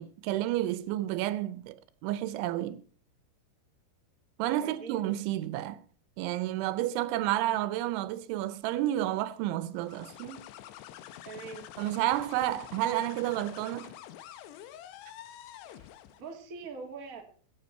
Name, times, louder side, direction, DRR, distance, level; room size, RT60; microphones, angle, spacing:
voice 1, 0.0-2.8 4.4-5.8 6.2-10.5 11.8-13.9, right 14 dB, 80° right, 3.1 m, -31 dB
voice 2, 4.6-5.0 11.2-11.7 15.7-17.2, right 5 dB, 60° right, 0.8 m, -43 dB
sound 1, 9.8-16.3, left 12 dB, 75° left, 2.7 m, -47 dB
20.5 x 8.5 x 4.4 m
omnidirectional pair, 5.4 m